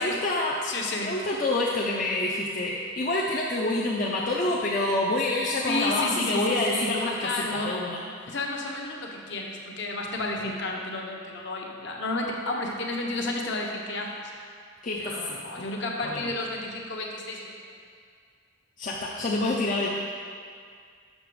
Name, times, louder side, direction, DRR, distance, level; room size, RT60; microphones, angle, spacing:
voice 1, 0.0-0.5 1.1-8.0 14.8-15.7 16.0-16.3 18.8-19.9, left 2 dB, 40° left, -4 dB, 0.5 m, -27 dB
voice 2, 0.6-1.1 5.7-6.9 7.2-7.8 8.3-14.1 15.0-17.5, left 2 dB, 55° left, 0 dB, 0.9 m, -31 dB
6.6 x 5.9 x 4.7 m, 2.1 s
head